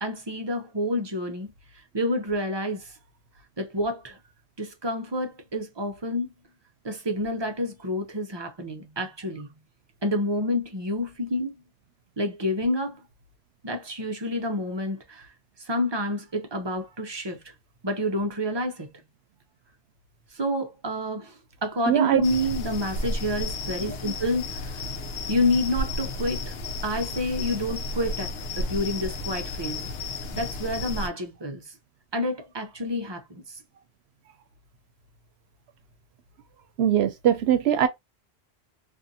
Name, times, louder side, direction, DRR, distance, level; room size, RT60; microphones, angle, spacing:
voice 1, 0.0-1.5 1.9-2.9 3.6-4.2 4.6-6.3 6.8-9.5 10.0-11.5 12.2-13.0 13.6-15.3 15.6-17.4 17.8-18.9 20.3-24.8 25.3-26.6 26.8-30.0 30.3-31.7 32.1-33.6, left 1 dB, 35° right, 0.5 m, -28 dB
voice 2, 21.9-22.2 36.8-37.9, right 10 dB, 80° right, 0.8 m, -21 dB
sound 1, 22.2-31.1, left 2 dB, 75° left, 0.9 m, -33 dB
2.5 x 2.5 x 2.6 m
omnidirectional pair, 1.1 m